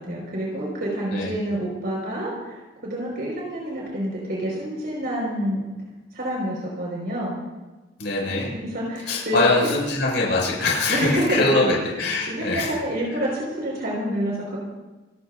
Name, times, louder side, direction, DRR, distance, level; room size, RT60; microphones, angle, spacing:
voice 1, 0.0-5.6 6.1-7.3 8.2-9.8 10.9-11.8 12.2-14.6, right 1 dB, 55° right, -3 dB, 5.4 m, -28 dB
voice 2, 8.0-8.5 9.1-12.8 13.1-13.2, left 2 dB, 65° left, -3 dB, 6.5 m, -23 dB
29.5 x 15.5 x 2.7 m, 1.2 s
head